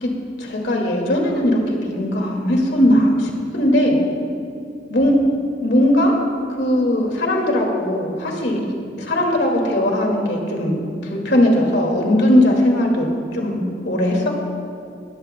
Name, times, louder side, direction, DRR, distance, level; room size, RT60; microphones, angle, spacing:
voice 1, 0.4-4.0 4.9-5.2 5.6-6.2 6.6-8.6 9.0-10.8 11.1-13.1 13.3-14.4, left 1 dB, 70° left, 1 dB, 2.2 m, -18 dB
20.0 x 13.5 x 2.2 m, 2.6 s
head